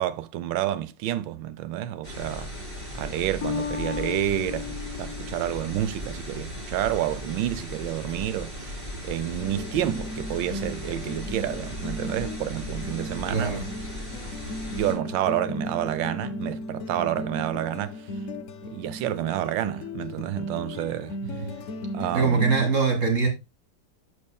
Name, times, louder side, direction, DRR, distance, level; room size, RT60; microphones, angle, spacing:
voice 1, 0.0-2.5 3.0-13.6 14.7-18.0 18.6-21.2 21.9-22.5, right 13 dB, 75° right, 1.3 m, -29 dB
sound 1, 2.0-14.9, left 1 dB, 15° right, 3.3 m, -37 dB
Bass guitar, 3.4-6.4, left 8 dB, 50° left, 1.2 m, -35 dB
sound 2, 9.4-22.6, left 1 dB, 85° left, 0.6 m, -36 dB
voice 2, 13.3-13.8 21.2-21.6 22.1-23.3, right 4 dB, 40° right, 1.8 m, -23 dB
12.0 x 4.8 x 2.2 m
omnidirectional pair, 2.1 m